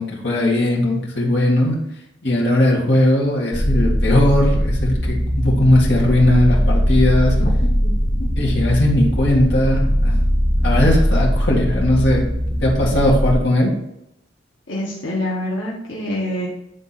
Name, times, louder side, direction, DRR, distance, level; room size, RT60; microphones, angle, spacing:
voice 1, 0.0-1.8 2.2-7.4 8.4-10.1 10.6-12.2 12.6-13.7, left 1 dB, 65° left, -3 dB, 2.0 m, -18 dB
sound 1, 3.5-13.3, equal, 30° left, 1.7 m, -19 dB
voice 2, 14.7-16.5, left 1 dB, 85° left, -5 dB, 1.5 m, -26 dB
9.5 x 3.8 x 4.2 m, 0.81 s
head